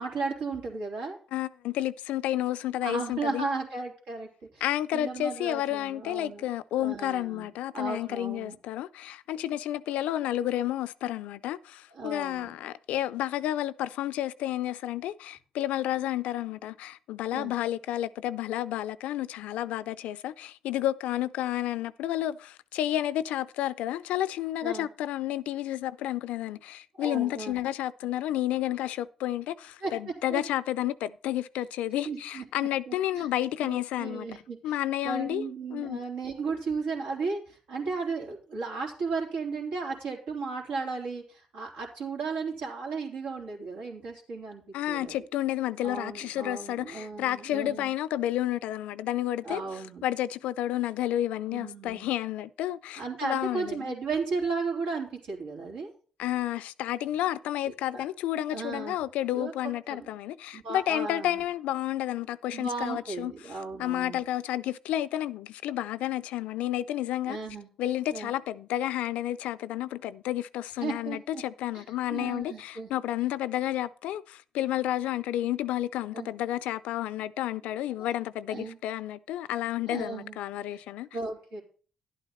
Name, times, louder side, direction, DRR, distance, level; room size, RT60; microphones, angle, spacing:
voice 1, 0.0-1.2 2.8-4.3 4.5-4.6 4.9-6.5 6.8-7.5 7.7-8.6 11.9-12.5 17.3-17.5 24.6-24.9 27.0-27.6 29.8-30.4 32.0-32.4 32.9-33.3 33.6-34.8 35.0-44.6 44.9-45.2 45.8-47.9 49.4-50.0 51.5-52.1 53.0-55.9 57.9-58.0 58.5-59.0 59.3-59.5 59.9-60.1 60.5-61.4 62.5-64.2 67.3-67.7 68.1-68.3 70.8-71.4 71.7-71.8 72.1-72.9 76.1-76.3 78.0-78.1 78.5-78.8 79.9-80.4 81.1-81.6, right 4 dB, 85° right, 3.3 m, -35 dB
voice 2, 1.3-3.5 4.6-34.3 34.6-36.0 44.7-53.9 56.2-67.4 67.8-81.1, left 13 dB, 85° left, 0.4 m, -31 dB
11.0 x 9.1 x 4.2 m
supercardioid pair, 60°, 2 cm